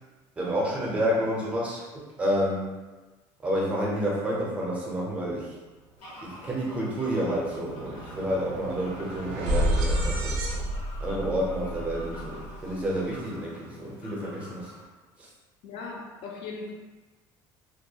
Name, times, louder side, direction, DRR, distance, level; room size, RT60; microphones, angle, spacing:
voice 1, 0.4-2.7 3.4-5.6 6.2-10.4 11.0-14.7 15.2-15.3, equal, 15° right, -4 dB, 0.5 m, -29 dB
Fowl, 6.0-14.8, left 1 dB, 80° left, 0.8 m, -46 dB
sound 1, 6.3-6.4 6.7-13.0, equal, 80° right, 0.4 m, -31 dB
voice 2, 15.6-16.7, left 4 dB, 60° left, 0 dB, 0.4 m, -38 dB
2.3 x 2.2 x 2.7 m, 1.2 s
cardioid pair, 170°, 10 cm